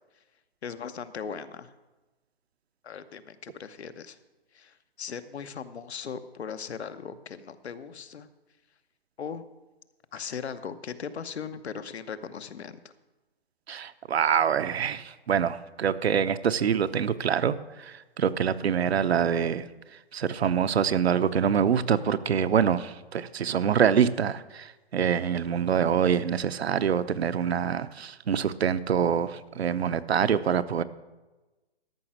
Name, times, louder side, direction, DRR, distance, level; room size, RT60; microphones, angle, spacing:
voice 1, 0.6-1.7 2.8-4.2 4.5-8.3 9.2-9.4 10.1-12.8, left 6 dB, 80° left, 11 dB, 1.0 m, -38 dB
voice 2, 13.7-19.7 20.1-30.8, right 8 dB, 75° right, 12 dB, 0.8 m, -25 dB
13.5 x 5.8 x 7.4 m, 1.1 s
hypercardioid pair, 160°, 32 cm